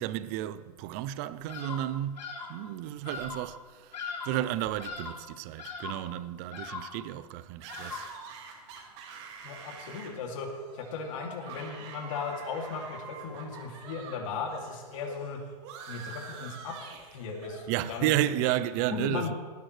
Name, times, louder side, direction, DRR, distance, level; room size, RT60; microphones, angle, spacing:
voice 1, 0.0-3.9 4.2-8.1 17.7-19.3, right 13 dB, 25° right, 0.4 m, -32 dB
Bird vocalization bird call bird song, 1.5-2.6 3.0-3.5 3.9-4.5 4.8-5.3 5.6-6.1 6.5-7.0 7.7-8.2, left 5 dB, 85° left, 3.8 m, -40 dB
sound 1, 7.6-14.2 14.5-17.7, right 6 dB, 40° right, 2.2 m, -46 dB
voice 2, 9.4-15.4 15.9-16.7 17.1-18.1 18.9-19.3, left 5 dB, 50° left, 2.6 m, -37 dB
17.5 x 10.5 x 3.3 m
hypercardioid pair, 145°, 21 cm